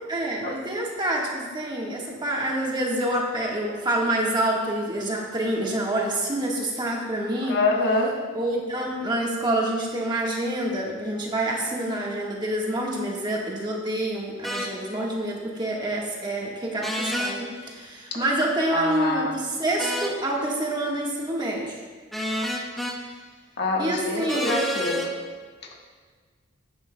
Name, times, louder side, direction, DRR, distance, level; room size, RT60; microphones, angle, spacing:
voice 1, 0.0-7.6 8.3-21.8 23.8-24.6, right 1 dB, 20° right, -2 dB, 1.4 m, -27 dB
voice 2, 7.4-8.2 18.1-18.2 18.7-19.3 23.6-25.1, left 2 dB, 55° left, -1 dB, 1.4 m, -25 dB
sound 1, 14.4-14.7 16.8-17.4 19.8-20.2 22.1-23.0 24.3-25.1, equal, ahead, 0.8 m, -28 dB
14.0 x 9.8 x 2.2 m, 1.5 s
head